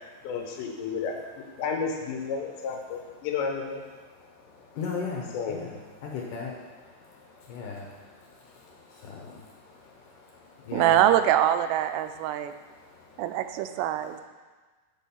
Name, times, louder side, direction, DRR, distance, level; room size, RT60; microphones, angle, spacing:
voice 1, 0.2-3.8 5.3-5.7, left 5 dB, 90° left, 2 dB, 3.2 m, -32 dB
voice 2, 4.6-6.9 7.4-8.0 8.7-10.1 10.6-11.0 13.0-13.1, left 5 dB, 65° left, -2 dB, 2.2 m, -37 dB
voice 3, 10.7-12.5 13.2-14.2, right 11 dB, 90° right, 10 dB, 2.7 m, -24 dB
6.3 x 6.2 x 7.1 m, 1.4 s
omnidirectional pair, 4.9 m